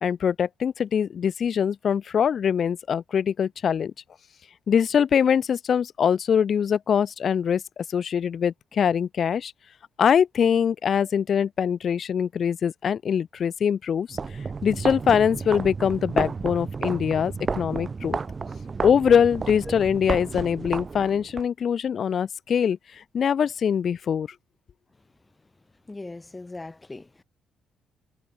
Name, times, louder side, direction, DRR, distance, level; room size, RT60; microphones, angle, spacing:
voice 1, 0.0-3.9 4.7-9.5 10.0-14.2 14.6-18.2 18.8-22.8 23.1-24.3, left 7 dB, 55° left, 0.6 m, -23 dB
sound 1, 14.1-21.5, right 4 dB, 35° right, 0.9 m, -32 dB
voice 2, 25.9-27.2, left 2 dB, 20° left, 2.3 m, -39 dB
cardioid pair, 90°, 0 cm